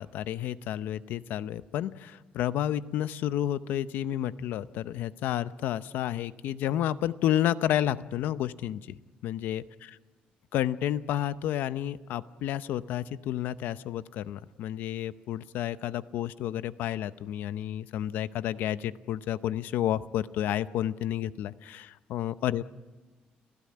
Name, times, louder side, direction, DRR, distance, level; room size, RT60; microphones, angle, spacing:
voice 1, 0.0-9.6 10.5-22.6, left 11 dB, 85° left, 15 dB, 0.7 m, -31 dB
29.0 x 15.5 x 8.7 m, 1.2 s
cardioid pair, 155°, 3 cm